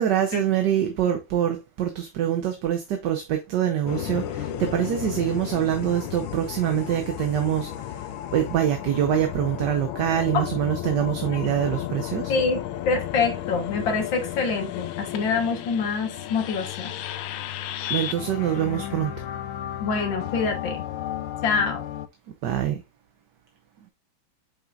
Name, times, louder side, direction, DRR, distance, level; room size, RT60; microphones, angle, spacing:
voice 1, 0.0-7.7 8.3-12.3 17.9-19.2 22.4-22.8, right 10 dB, 65° right, 1.3 m, -25 dB
sound 1, 3.9-22.1, left 11 dB, 85° left, 1.5 m, -33 dB
voice 2, 12.3-16.9 19.8-20.8 21.4-21.8, left 4 dB, 70° left, 2.1 m, -26 dB
7.4 x 5.4 x 2.5 m
omnidirectional pair, 2.2 m